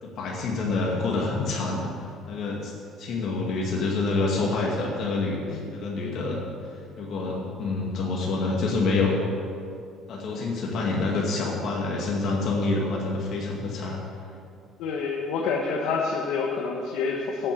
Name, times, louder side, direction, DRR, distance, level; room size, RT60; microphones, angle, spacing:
voice 1, 0.0-1.9 2.3-2.7 3.0-6.4 7.0-9.2 10.1-14.0, left 3 dB, 60° left, -2 dB, 2.1 m, -27 dB
voice 2, 14.8-17.5, left 5 dB, 75° left, 0 dB, 1.3 m, -27 dB
9.3 x 8.6 x 8.5 m, 2.4 s
cardioid pair, 115°, 0 cm